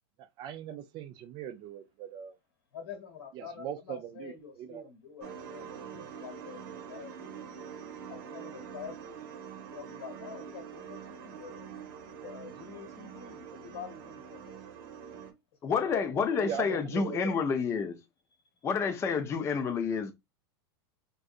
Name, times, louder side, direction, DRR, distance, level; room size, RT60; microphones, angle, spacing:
voice 1, 0.4-2.3 3.3-4.9 16.3-17.4, right 9 dB, 35° right, 0.5 m, -40 dB
voice 2, 2.7-7.3 8.1-9.2 9.7-11.7 12.2-14.6 15.7-16.0, left 7 dB, 80° left, 1.5 m, -47 dB
sound 1, 5.2-15.3, right 7 dB, 65° right, 0.8 m, -45 dB
voice 3, 15.6-18.0 18.6-20.1, left 5 dB, 20° left, 0.4 m, -29 dB
3.6 x 2.6 x 2.5 m
supercardioid pair, 135°, 13 cm